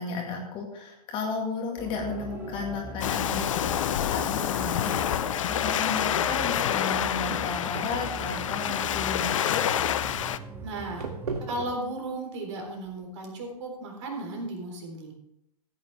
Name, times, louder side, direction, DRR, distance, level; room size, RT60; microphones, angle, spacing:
voice 1, 0.0-9.7, left 4 dB, 25° left, 1 dB, 2.1 m, -34 dB
sound 1, 1.8-11.7, right 1 dB, 10° right, 1.1 m, -40 dB
sound 2, 2.3-13.7, right 4 dB, 70° right, 1.5 m, -43 dB
Waves surf, 3.0-10.4, left 10 dB, 50° left, 0.5 m, -28 dB
voice 2, 10.6-11.0 11.4-15.1, right 2 dB, 45° right, 2 dB, 3.7 m, -35 dB
15.0 x 9.4 x 3.4 m, 0.80 s
figure-of-eight pair, 115°, 20 cm